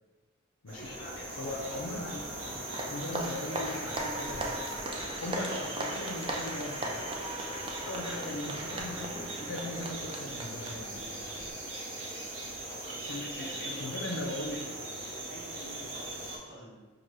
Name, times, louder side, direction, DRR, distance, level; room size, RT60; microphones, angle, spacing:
sound 1, 0.7-16.4, right 1 dB, 70° right, 0.8 m, -40 dB
voice 1, 0.8-1.5 5.2-5.6 12.7-14.8 15.2-16.9, left 1 dB, 50° left, -3 dB, 0.8 m, -48 dB
voice 2, 1.4-2.2 2.8-4.7 5.2-7.0 7.8-11.0 13.1-14.7, left 1 dB, 80° left, -2 dB, 0.5 m, -39 dB
Applause, 1.4-11.5, right 1 dB, 25° right, 0.4 m, -38 dB
5.8 x 2.2 x 3.2 m, 1.3 s
head